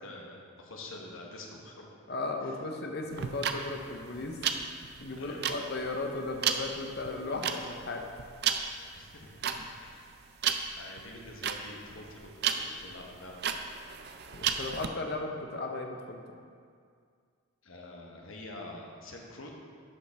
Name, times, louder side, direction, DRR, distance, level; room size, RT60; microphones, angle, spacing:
voice 1, 0.0-2.0 2.4-2.5 5.2-5.4 8.9-9.3 9.8-10.2 10.7-12.3 12.5-13.5 17.6-19.5, left 2 dB, 75° left, -1 dB, 1.1 m, -46 dB
voice 2, 2.1-4.4 5.0-8.1 9.5-9.6 14.3-16.2, left 2 dB, 50° left, 3 dB, 0.8 m, -36 dB
sound 1, 3.1-14.9, right 8 dB, 50° right, 0.4 m, -33 dB
11.0 x 5.4 x 3.4 m, 2.2 s
head